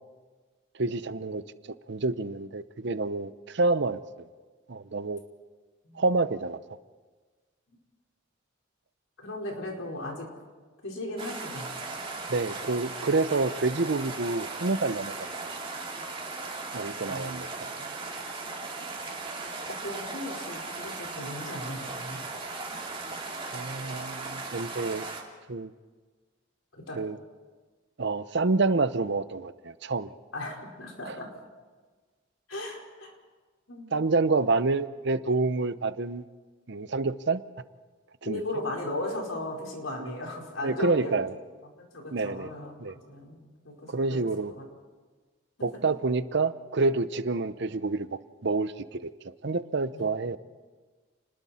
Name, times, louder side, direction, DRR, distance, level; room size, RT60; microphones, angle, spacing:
voice 1, 0.8-4.3 4.7-5.2 5.9-6.6 12.3-15.1 15.5-15.6 16.7-17.5 23.5-25.0 25.5-25.7 27.0-27.2 28.0-30.1 31.1-31.2 33.9-36.3 36.7-37.4 38.2-38.4 40.0-40.1 40.6-41.3 42.1-42.5 42.8-42.9 43.9-44.5 45.6-50.4, right 3 dB, 60° right, 14 dB, 0.8 m, -28 dB
voice 2, 9.2-10.3 10.8-11.7 17.1-17.4 17.8-17.9 19.8-22.2 26.7-27.0 30.3-31.3 32.5-33.1 33.7-33.9 38.2-41.2 41.9-42.7 43.1-44.2 44.5-44.6 49.9-50.1, left 1 dB, 90° left, 0 dB, 4.7 m, -37 dB
sound 1, 11.2-25.2, right 3 dB, 30° right, 2.8 m, -37 dB
30.0 x 20.5 x 4.4 m, 1.4 s
head